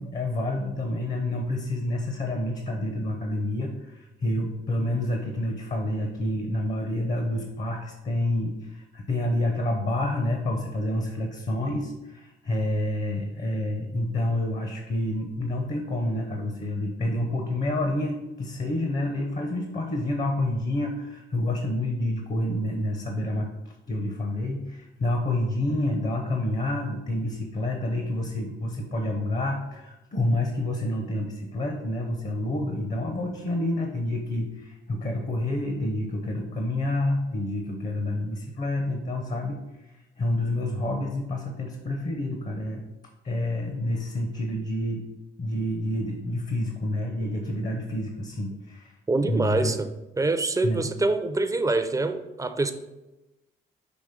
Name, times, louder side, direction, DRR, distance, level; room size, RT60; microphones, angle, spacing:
voice 1, 0.0-42.8 43.2-45.1 45.4-49.8 50.6-50.9, left 1 dB, 40° left, 3 dB, 0.8 m, -28 dB
voice 2, 49.1-49.9 50.2-52.7, right 3 dB, 15° right, 9 dB, 0.5 m, -25 dB
6.1 x 3.0 x 5.1 m, 1.0 s
cardioid pair, 90°, 20 cm